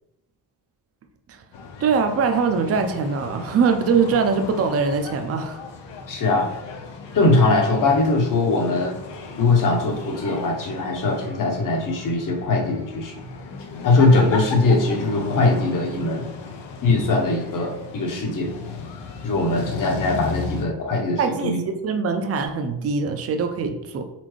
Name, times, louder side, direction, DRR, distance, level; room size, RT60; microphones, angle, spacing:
sound 1, 1.5-20.6, left 4 dB, 90° left, 0.7 m, -36 dB
voice 1, 1.8-5.6 21.2-24.1, right 5 dB, 35° right, 6 dB, 0.5 m, -22 dB
voice 2, 6.1-6.5 7.1-9.0 9.4-13.1 13.8-16.3 16.8-18.5 19.2-21.6, left 3 dB, 50° left, 2 dB, 0.9 m, -21 dB
4.2 x 3.8 x 3.1 m, 0.89 s
cardioid pair, 130°, 42 cm